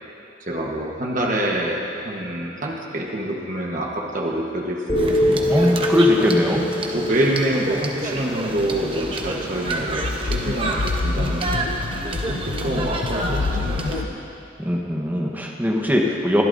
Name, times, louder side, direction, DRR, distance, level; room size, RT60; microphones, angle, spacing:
voice 1, 0.5-5.8 6.9-11.7 12.1-14.2, right 1 dB, 45° right, -1 dB, 1.2 m, -26 dB
sound 1, 4.9-9.0, left 1 dB, 20° left, 2.1 m, -25 dB
sound 2, 5.0-14.0, right 2 dB, 30° right, 0.9 m, -29 dB
voice 2, 5.5-6.7 14.6-16.4, left 1 dB, 10° right, -1 dB, 1.1 m, -20 dB
sound 3, 8.3-14.0, left 3 dB, 65° left, 0.5 m, -28 dB
22.5 x 12.0 x 2.7 m, 2.6 s
head